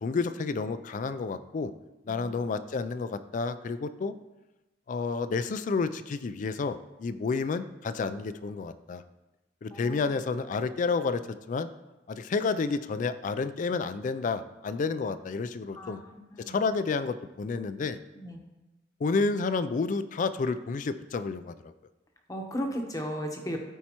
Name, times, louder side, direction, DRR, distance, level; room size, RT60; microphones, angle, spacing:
voice 1, 0.0-1.7 2.1-4.1 4.9-9.0 9.6-11.2 11.5-11.7 12.1-16.0 16.5-18.0 19.0-21.7, left 4 dB, 45° left, 12 dB, 0.3 m, -30 dB
voice 2, 9.7-10.1 15.7-16.6 18.1-18.4 22.3-23.6, equal, 20° left, 3 dB, 0.9 m, -36 dB
13.0 x 4.5 x 2.9 m, 1.0 s
head